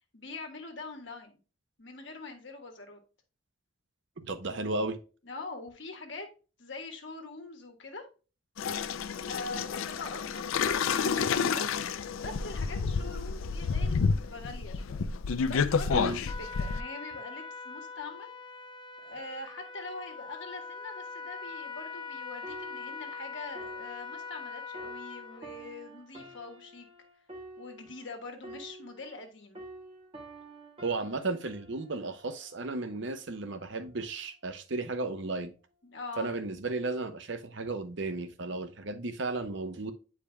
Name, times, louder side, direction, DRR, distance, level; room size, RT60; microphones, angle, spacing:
voice 1, 0.1-1.4 1.8-3.0 4.4-4.7 5.2-6.3 6.6-8.0 9.3-11.7 12.2-15.1 15.5-18.3 19.0-26.9 27.6-29.6 35.8-36.3, left 3 dB, 60° left, 1.5 m, -43 dB
voice 2, 4.2-5.0 15.9-16.2 30.8-35.5 36.2-39.9, right 3 dB, 60° right, 0.8 m, -34 dB
sound 1, 8.6-16.8, left 5 dB, 85° left, 0.4 m, -30 dB
Trumpet, 15.9-25.4, left 4 dB, 25° left, 0.5 m, -42 dB
sound 2, 22.4-29.3 29.5-33.1 33.8-34.0, right 2 dB, 25° right, 1.5 m, -49 dB
8.5 x 5.0 x 2.2 m
head